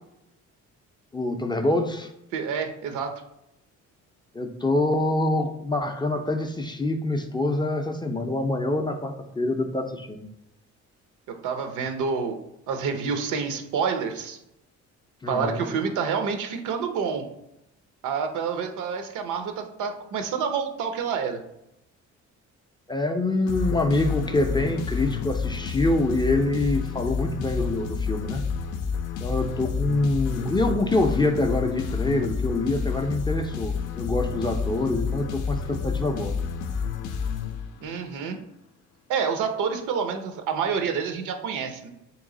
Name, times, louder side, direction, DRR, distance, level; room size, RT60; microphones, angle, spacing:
voice 1, 1.1-2.1 4.3-10.3 15.2-15.6 22.9-28.4 29.2-36.3, left 2 dB, 15° left, 4 dB, 0.4 m, -25 dB
voice 2, 2.3-3.2 11.3-12.4 12.7-14.4 15.3-17.2 18.0-21.4 37.8-38.4 39.1-41.9, right 6 dB, 80° right, 6 dB, 0.6 m, -28 dB
sound 1, 23.5-38.0, left 6 dB, 80° left, 0.5 m, -30 dB
3.2 x 3.0 x 3.7 m, 0.84 s
cardioid pair, 90°, 30 cm